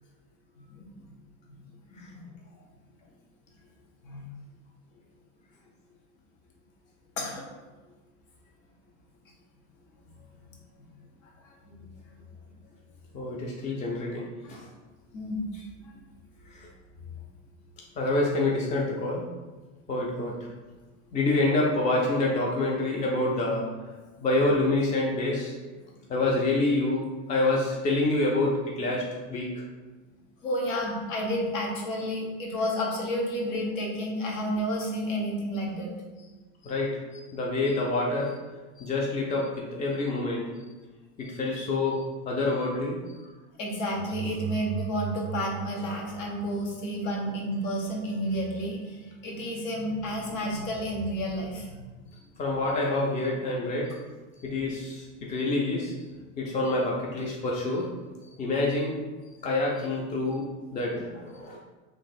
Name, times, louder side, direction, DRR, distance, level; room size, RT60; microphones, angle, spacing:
voice 1, 0.6-0.9 1.5-1.6 1.9-2.4 4.0-4.3 7.2-7.5 11.2-11.9 14.4-14.6 15.1-15.9 30.4-35.9 43.6-51.9 53.6-53.7, equal, 90° left, -1 dB, 1.1 m, -31 dB
voice 2, 13.1-14.7 16.5-16.7 18.0-19.3 19.9-20.5 21.1-23.7 24.2-25.5 26.1-29.5 36.6-38.4 38.8-40.5 41.2-42.0 42.3-43.2 52.4-54.0 54.4-55.9 56.4-57.9 58.2-59.0 59.4-61.6, left 2 dB, 20° left, -2 dB, 0.3 m, -27 dB
sound 1, 44.0-46.9, right 11 dB, 50° right, 0.4 m, -37 dB
3.0 x 2.4 x 4.2 m, 1.3 s
supercardioid pair, 130°, 38 cm